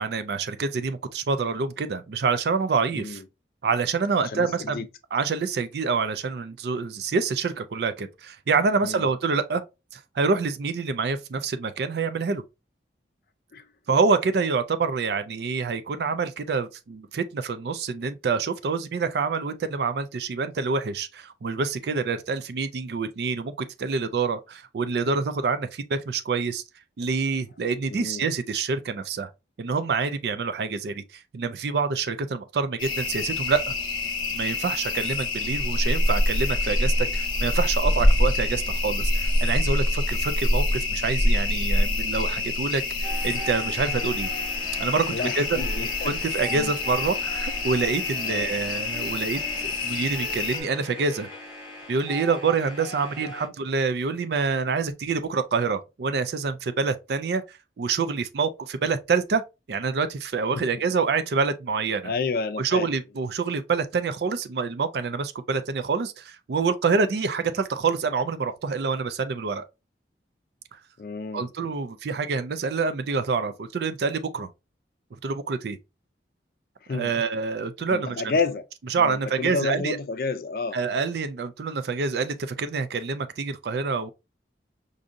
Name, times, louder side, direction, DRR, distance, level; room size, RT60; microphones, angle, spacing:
voice 1, 0.0-3.2 3.6-9.6 9.9-12.4 13.9-26.6 27.0-29.3 29.6-33.7 34.3-44.3 44.8-45.6 46.0-51.3 51.9-59.4 59.7-62.1 62.6-69.6 70.7-70.8 71.3-74.5 75.2-75.8 76.9-78.3 78.9-80.0 80.7-84.1, right 4 dB, 65° right, 0.4 m, -27 dB
voice 2, 4.3-4.9 8.8-9.0 13.5-13.6 27.9-28.3 45.1-46.2 46.5-46.7 48.2-48.5 60.5-60.7 62.0-62.9 71.0-71.5 76.9-77.1 77.9-78.7 78.9-80.8, left 4 dB, 55° left, 0.4 m, -30 dB
sound 1, 32.8-50.6, left 2 dB, 25° left, 0.8 m, -26 dB
sound 2, 43.0-53.5, equal, 10° right, 1.4 m, -40 dB
4.8 x 2.6 x 2.5 m
head